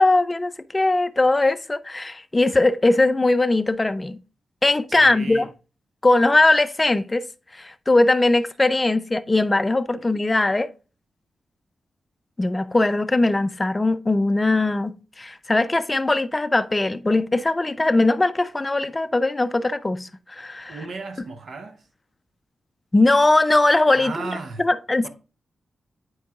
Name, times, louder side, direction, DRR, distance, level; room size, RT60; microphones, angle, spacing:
voice 1, 0.0-4.2 4.6-5.5 6.0-7.3 7.5-10.7 12.4-20.8 22.9-24.1 24.6-25.1, left 2 dB, 25° left, 0.4 m, -20 dB
voice 2, 5.0-5.5 20.7-21.9 24.0-24.7 25.0-25.1, right 4 dB, 70° right, 0.8 m, -35 dB
8.6 x 4.7 x 2.4 m
cardioid pair, 75°, 0 cm